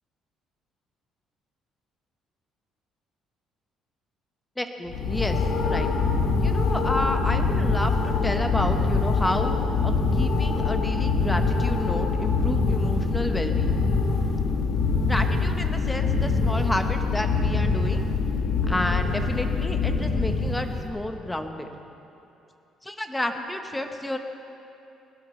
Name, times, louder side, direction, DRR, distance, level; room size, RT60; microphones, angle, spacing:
voice 1, 4.6-5.4 5.6-5.9 6.4-13.7 15.0-18.0 18.7-21.7 22.8-24.2, left 1 dB, 10° left, 6 dB, 1.0 m, -30 dB
sound 1, 4.9-20.9, left 4 dB, 70° left, 1.9 m, -24 dB
20.0 x 12.5 x 4.4 m, 2.7 s
cardioid pair, 130°, 0 cm